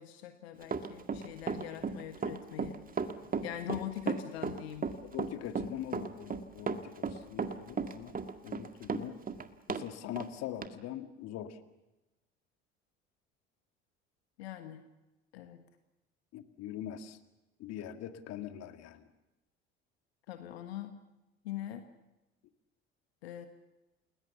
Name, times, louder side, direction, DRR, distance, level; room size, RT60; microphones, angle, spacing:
voice 1, 0.0-2.8 3.4-4.9 14.4-14.8 15.3-15.6 20.3-21.0 21.4-21.9 23.2-23.5, left 12 dB, 70° left, 8 dB, 1.6 m, -42 dB
Run, 0.6-9.9 10.2-10.3 10.6-10.7, right 5 dB, 25° right, 2.0 m, -34 dB
voice 2, 5.0-8.2 8.4-9.2 9.7-11.6 16.3-17.2 17.6-19.0, left 11 dB, 50° left, 8 dB, 2.0 m, -42 dB
29.5 x 20.5 x 7.2 m, 1.0 s
figure-of-eight pair, 60°, 32 cm